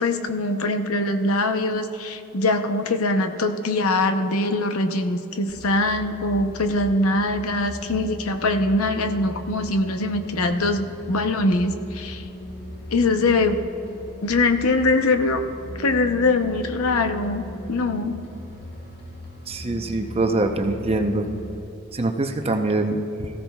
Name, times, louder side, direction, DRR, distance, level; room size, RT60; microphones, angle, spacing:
voice 1, 0.0-12.2 12.9-13.6 14.2-15.4 15.8-18.2, left 2 dB, 80° left, 8 dB, 0.8 m, -22 dB
sound 1, 5.5-21.5, left 1 dB, 55° left, 3.1 m, -38 dB
voice 2, 19.5-21.3 21.9-23.3, right 2 dB, 30° right, 5 dB, 0.7 m, -24 dB
18.0 x 15.0 x 2.3 m, 2.9 s
head